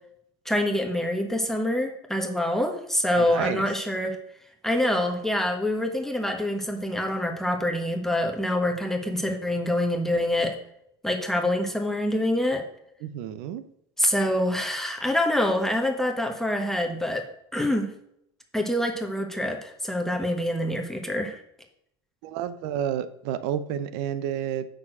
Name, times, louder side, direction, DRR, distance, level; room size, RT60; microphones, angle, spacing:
voice 1, 0.4-4.2 4.6-10.6 11.0-12.6 14.0-17.2 17.5-17.9 18.5-21.4, left 1 dB, 5° left, 2 dB, 1.3 m, -26 dB
voice 2, 3.2-3.6 13.0-13.7 22.2-24.7, right 9 dB, 70° right, 14 dB, 0.8 m, -30 dB
7.3 x 6.4 x 6.1 m, 0.74 s
supercardioid pair, 110°, 13 cm